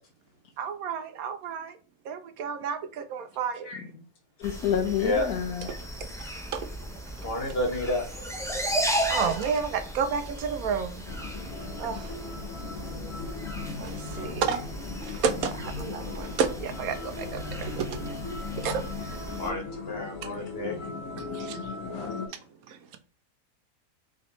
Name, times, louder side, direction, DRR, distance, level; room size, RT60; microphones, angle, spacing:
voice 1, 0.6-1.8 2.0-3.7 5.7-5.8 6.2-6.7 7.2-7.3 8.8-11.1 11.8-12.2 13.8-14.6 15.0-18.2 18.6-19.4 20.2-20.3 21.2-21.8 22.1-22.4 22.7-23.0, right 6 dB, 75° right, 1.1 m, -32 dB
voice 2, 4.4-5.7, left 9 dB, 85° left, 1.1 m, -28 dB
sound 1, 4.4-19.5, equal, 5° left, 0.4 m, -35 dB
voice 3, 7.2-8.0 19.4-20.8, left 1 dB, 45° left, 1.2 m, -30 dB
sound 2, 11.0-22.3, left 4 dB, 65° left, 1.3 m, -38 dB
3.8 x 3.3 x 3.9 m
omnidirectional pair, 1.6 m